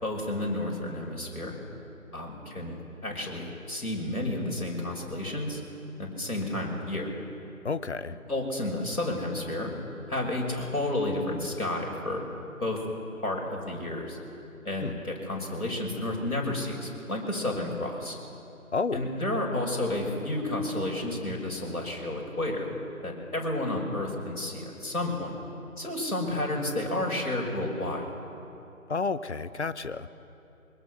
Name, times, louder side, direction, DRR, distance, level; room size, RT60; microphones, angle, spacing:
voice 1, 0.0-1.5 2.1-5.6 6.0-7.1 8.3-9.7 10.1-12.2 12.6-12.8 13.2-14.2 14.6-18.2 18.9-22.7 23.0-25.3 25.8-28.1, left 1 dB, 80° left, 0 dB, 5.7 m, -31 dB
voice 2, 7.6-8.1 14.8-14.9 18.7-19.1 28.9-30.1, left 4 dB, 50° left, 14 dB, 0.9 m, -30 dB
24.0 x 22.5 x 6.4 m, 2.8 s
figure-of-eight pair, 160°, 43 cm